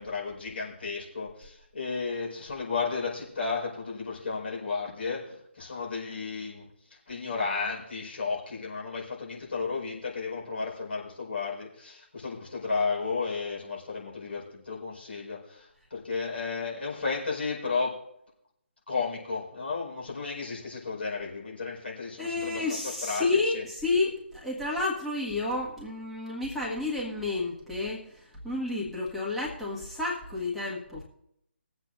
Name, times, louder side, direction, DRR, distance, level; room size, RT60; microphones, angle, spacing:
voice 1, 0.0-18.0 18.9-22.6 23.0-23.2 23.5-23.6, left 4 dB, 60° left, -3 dB, 4.9 m, -33 dB
voice 2, 22.2-31.0, left 3 dB, ahead, -6 dB, 1.6 m, -30 dB
20.5 x 7.9 x 2.6 m, 0.76 s
figure-of-eight pair, 145°, 7 cm